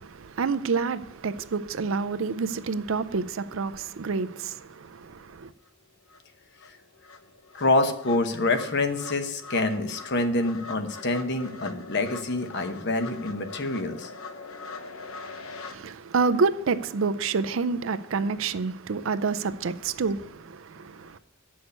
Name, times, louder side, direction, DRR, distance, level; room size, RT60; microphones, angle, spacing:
voice 1, 0.0-5.5 15.7-21.2, right 4 dB, 65° right, 0.5 m, -28 dB
sound 1, 5.7-5.8 6.1-15.8, left 4 dB, 85° left, 1.0 m, -42 dB
voice 2, 7.5-14.1, left 2 dB, 55° left, 1.0 m, -26 dB
8.2 x 6.2 x 8.0 m
head